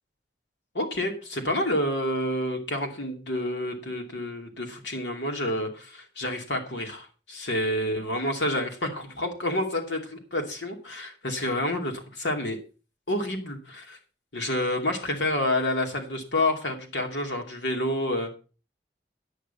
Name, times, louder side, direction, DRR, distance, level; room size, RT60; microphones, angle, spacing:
voice 1, 0.7-12.6 13.1-14.0 14.3-18.3, left 1 dB, 90° left, 3 dB, 2.6 m, -29 dB
9.9 x 8.7 x 5.5 m, 0.35 s
head